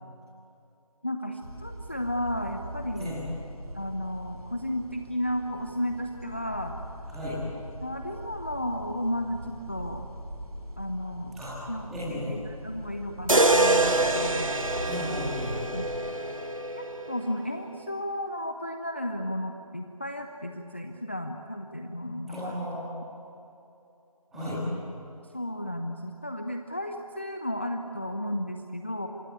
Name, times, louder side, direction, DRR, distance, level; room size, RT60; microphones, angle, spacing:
voice 1, 1.0-3.2 3.7-6.8 7.8-10.0 10.8-11.3 11.7-14.5 15.7-15.9 16.8-22.6 24.3-24.8 25.3-29.1, left 1 dB, 20° left, 4 dB, 0.6 m, -33 dB
sound 1, 1.4-16.0, right 1 dB, 75° right, 6.5 m, -41 dB
voice 2, 7.1-7.4 11.3-11.5 11.9-12.3 14.9-15.6 22.3-22.9 24.3-24.6, equal, ahead, -12 dB, 2.1 m, -35 dB
sound 2, 13.3-17.4, right 2 dB, 60° right, 1.8 m, -25 dB
26.0 x 19.5 x 9.6 m, 2.8 s
figure-of-eight pair, 165°, 19 cm